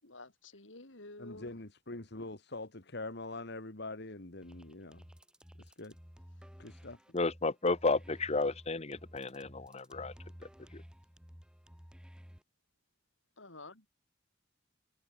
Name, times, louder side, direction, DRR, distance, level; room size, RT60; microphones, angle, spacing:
voice 1, 0.0-1.5 13.4-13.8, left 2 dB, 80° left, 4.9 m, -51 dB
voice 2, 1.2-5.0 5.6-5.9 6.6-7.0, left 2 dB, 60° left, 2.4 m, -44 dB
sound 1, 4.4-12.4, equal, 5° right, 1.7 m, -54 dB
voice 3, 7.1-10.1 10.7-10.8, left 3 dB, 35° left, 1.1 m, -32 dB
head